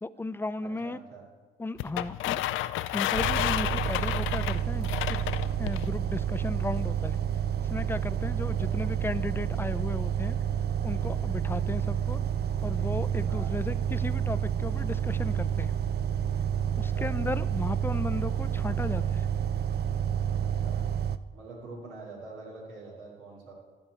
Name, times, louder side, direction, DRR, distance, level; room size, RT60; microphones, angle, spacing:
voice 1, 0.0-1.0 1.6-2.4 2.9-5.2 5.6-7.2 7.7-10.4 10.8-12.2 12.6-15.7 16.8-19.3, left 2 dB, 10° left, 13 dB, 0.4 m, -35 dB
voice 2, 0.6-1.2 8.4-8.7 13.3-13.5 16.7-17.1 20.4-20.8 21.3-23.5, right 3 dB, 90° right, -4 dB, 2.9 m, -45 dB
sound 1, 1.8-5.9, left 14 dB, 80° left, 0.4 m, -31 dB
sound 2, 3.1-21.2, right 9 dB, 55° right, 0.4 m, -29 dB
12.0 x 4.4 x 8.2 m, 1.3 s
cardioid pair, 90°, 20 cm